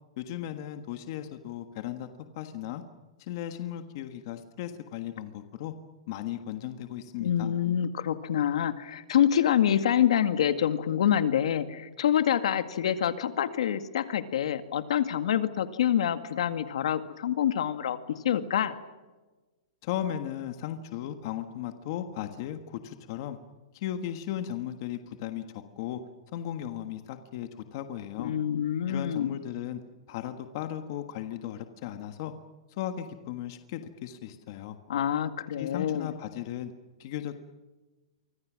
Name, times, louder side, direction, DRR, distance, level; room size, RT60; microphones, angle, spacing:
voice 1, 0.2-2.1 2.3-2.8 3.2-5.7 6.1-7.5 19.8-23.4 23.7-26.0 26.3-28.3 28.9-29.8 30.1-32.3 32.8-34.8 35.6-36.7 37.0-37.4, left 11 dB, 35° left, 8 dB, 1.5 m, -36 dB
voice 2, 7.2-18.0 18.2-18.8 28.2-29.3 34.9-36.1, left 9 dB, 70° left, 10 dB, 2.1 m, -26 dB
29.0 x 25.0 x 6.3 m, 1.2 s
supercardioid pair, 180°, 3 cm